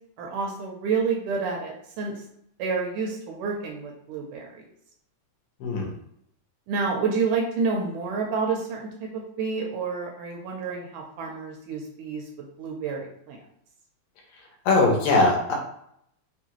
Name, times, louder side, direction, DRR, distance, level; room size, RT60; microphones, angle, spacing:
voice 1, 0.2-2.1 2.6-4.6 6.7-12.2 12.6-13.4, right 4 dB, 80° right, 0 dB, 1.9 m, -29 dB
voice 2, 14.7-15.5, left 3 dB, 80° left, 0 dB, 2.5 m, -20 dB
5.5 x 2.3 x 2.9 m, 0.72 s
omnidirectional pair, 3.9 m